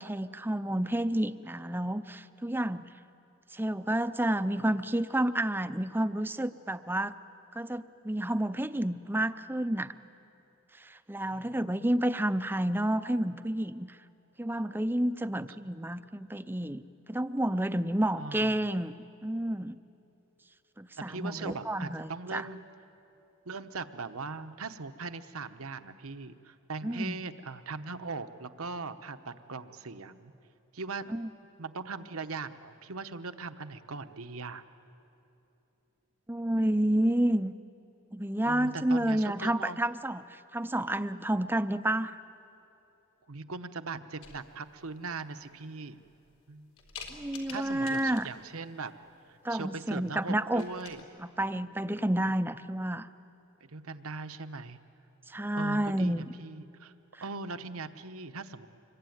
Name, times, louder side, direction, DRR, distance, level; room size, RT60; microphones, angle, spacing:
voice 1, 0.0-2.9 3.5-7.1 7.6-9.9 10.8-13.9 14.4-16.8 17.1-19.0 19.2-19.8 20.8-22.5 26.8-27.2 31.1-31.3 36.3-37.5 38.1-42.2 47.1-48.3 49.4-50.6 51.2-53.1 55.3-56.2 57.1-57.2, right 1 dB, 10° right, 13 dB, 0.5 m, -30 dB
voice 2, 11.3-11.9 15.6-15.7 18.1-18.6 21.1-22.6 23.4-30.3 30.7-31.0 31.6-34.6 38.5-39.9 43.3-46.0 46.5-46.7 47.5-49.0 49.3-51.0 53.6-54.8 55.5-56.9 57.2-58.7, right 4 dB, 75° right, 10 dB, 1.0 m, -40 dB
sound 1, 44.2-44.8 45.4-45.5 46.0-46.4 46.8-48.5 49.9-50.2 50.4-51.0, left 5 dB, 75° left, 3.5 m, -48 dB
26.0 x 22.5 x 9.4 m, 2.9 s
head